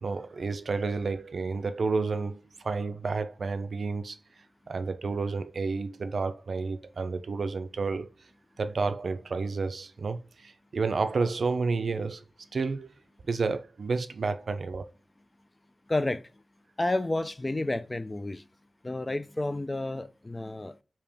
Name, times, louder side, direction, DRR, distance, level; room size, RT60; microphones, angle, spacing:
voice 1, 0.0-4.2 4.7-8.1 8.6-12.2 12.5-12.9 13.3-14.9, right 4 dB, 65° right, 0.5 m, -30 dB
voice 2, 15.9-16.2 16.8-18.4 18.8-20.8, left 2 dB, 25° left, 0.4 m, -30 dB
5.2 x 2.8 x 3.4 m
wide cardioid pair, 95°, 0 cm